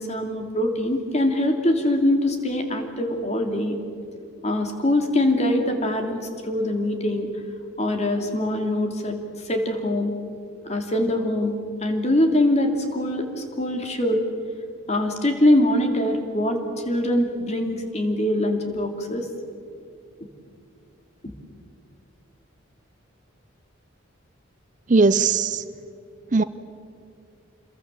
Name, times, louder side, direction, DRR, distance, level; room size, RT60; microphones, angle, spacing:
voice 1, 0.0-3.8 4.4-7.3 7.8-9.2 9.5-10.1 10.6-11.5 11.8-14.2 14.9-16.6 16.8-19.3 21.2-21.3, left 1 dB, 35° left, 4 dB, 2.7 m, -23 dB
voice 2, 24.9-25.6 26.3-26.4, right 4 dB, 40° right, 13 dB, 0.6 m, -18 dB
27.0 x 22.0 x 7.4 m, 2.4 s
head